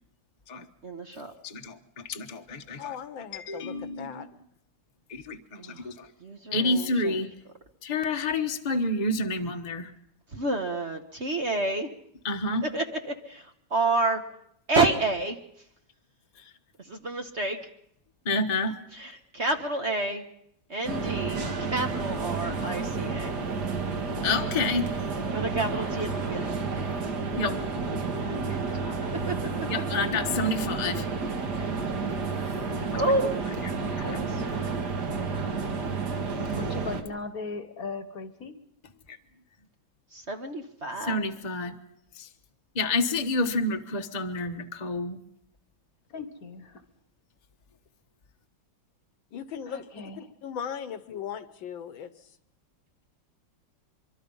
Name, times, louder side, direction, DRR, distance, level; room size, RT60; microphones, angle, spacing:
voice 1, 0.8-1.3 5.6-5.9 6.2-7.1 10.3-11.9 12.6-14.2 14.7-15.4 16.9-17.6 19.3-20.2 20.7-21.4 21.7-22.8 23.1-23.2 25.3-26.5 28.2-28.3 31.5-31.8 32.9-33.4 34.0-34.4 40.1-41.2, right 2 dB, 35° right, 5 dB, 1.3 m, -29 dB
voice 2, 1.4-3.0 3.3-4.3 5.1-6.1 6.5-7.3 7.8-9.9 12.2-12.7 18.2-18.8 24.2-24.9 27.4-27.7 29.7-31.1 32.9-33.0 33.9-34.2 39.1-39.2 41.0-41.8 42.1-42.3 42.7-45.2, left 2 dB, 25° left, 4 dB, 1.0 m, -29 dB
voice 3, 2.8-4.3 16.3-16.6 49.3-52.4, left 8 dB, 70° left, 12 dB, 1.7 m, -39 dB
sound 1, 20.8-37.0, right 4 dB, 55° right, 2.2 m, -31 dB
voice 4, 22.4-22.8 25.9-26.3 28.5-29.1 36.5-38.6 46.1-46.8 49.7-50.2, left 4 dB, 50° left, 11 dB, 1.6 m, -39 dB
24.5 x 24.0 x 5.5 m, 0.73 s
omnidirectional pair, 2.3 m